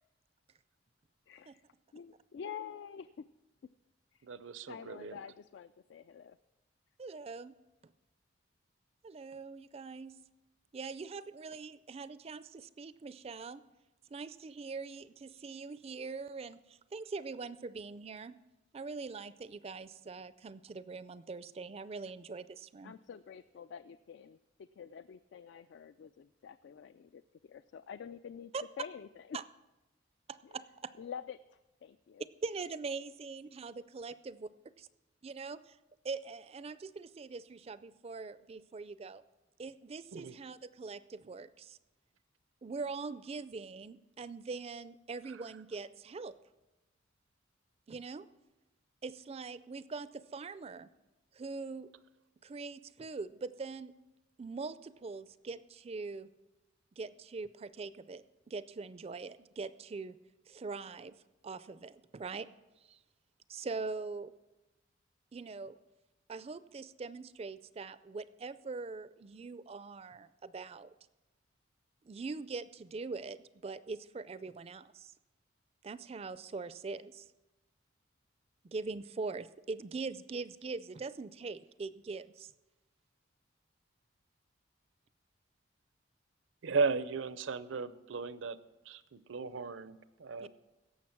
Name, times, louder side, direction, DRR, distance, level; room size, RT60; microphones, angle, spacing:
voice 1, 1.3-1.6 1.9-3.3 4.1-4.3 4.7-6.4 22.8-28.5 28.8-29.4 30.4-30.6 31.0-32.2, left 7 dB, 65° left, 14 dB, 0.3 m, -47 dB
voice 2, 4.2-5.2 40.1-40.3 86.6-88.6 88.9-89.9 90.3-90.5, right 4 dB, 75° right, 15 dB, 0.6 m, -35 dB
voice 3, 7.0-7.5 9.0-10.2 10.7-13.6 14.1-18.4 18.7-22.9 28.5-28.6 29.3-29.4 30.3-30.9 32.4-34.4 34.8-34.9 35.2-35.8 36.0-39.2 39.6-41.8 42.6-46.3 47.9-48.3 49.0-50.9 51.3-51.9 52.4-53.9 54.4-56.3 57.0-60.2 60.5-61.2 61.4-62.5 62.8-63.0 63.5-64.3 65.3-65.8 66.3-70.9 72.0-75.1 75.8-77.3 78.6-82.5 90.4-90.5, right 4 dB, 30° right, 15 dB, 0.4 m, -42 dB
17.0 x 6.9 x 5.9 m, 1.0 s
head